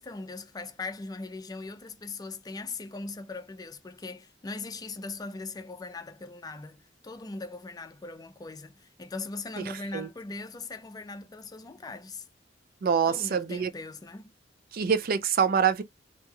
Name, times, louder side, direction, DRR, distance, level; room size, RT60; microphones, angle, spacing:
voice 1, 0.0-12.3 13.1-14.3, left 3 dB, 20° left, 0.4 m, -40 dB
voice 2, 12.8-13.7 14.7-15.8, right 7 dB, 50° right, 0.4 m, -25 dB
2.8 x 2.3 x 2.9 m
head